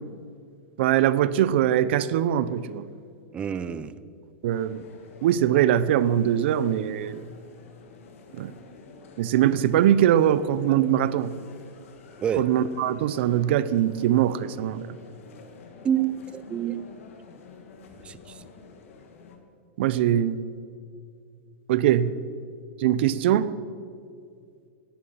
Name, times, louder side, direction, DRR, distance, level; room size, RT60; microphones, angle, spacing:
voice 1, 0.8-2.8 4.4-4.8 5.2-7.3 8.4-8.5 9.2-11.3 12.4-14.9 19.8-20.4 21.7-22.2 22.8-23.5, right 11 dB, 55° right, 0.7 m, -22 dB
voice 2, 3.3-3.9 12.2-12.4 15.8-16.9 18.0-18.4, right 9 dB, 15° right, 0.4 m, -28 dB
sound 1, 4.5-19.4, left 4 dB, 75° left, 2.2 m, -49 dB
17.0 x 11.5 x 5.7 m
supercardioid pair, 165°, 7 cm